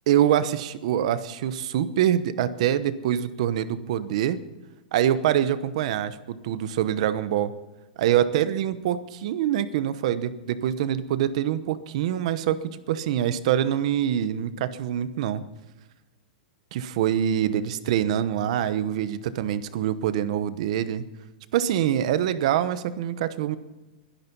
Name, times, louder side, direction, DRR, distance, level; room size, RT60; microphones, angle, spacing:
voice 1, 0.1-4.4 4.9-7.5 8.0-15.4 16.7-21.0 21.5-23.6, right 10 dB, 45° right, 14 dB, 1.0 m, -25 dB
22.0 x 10.5 x 5.4 m, 1.1 s
supercardioid pair, 175°, 5 cm